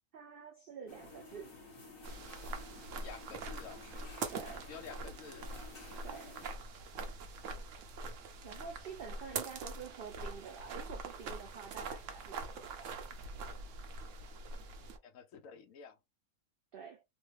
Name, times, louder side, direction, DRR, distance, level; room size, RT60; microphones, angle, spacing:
voice 1, 0.1-1.5 4.3-4.7 6.0-6.4 8.4-13.1 16.7-17.0, right 6 dB, 85° right, 0.5 m, -48 dB
sound 1, 0.9-6.5, left 3 dB, 40° left, 1.4 m, -53 dB
sound 2, 2.0-15.0, right 3 dB, 65° right, 0.9 m, -44 dB
voice 2, 3.0-3.8 4.7-5.5 15.0-16.0, left 6 dB, 70° left, 1.0 m, -50 dB
3.1 x 2.1 x 3.2 m
omnidirectional pair, 1.5 m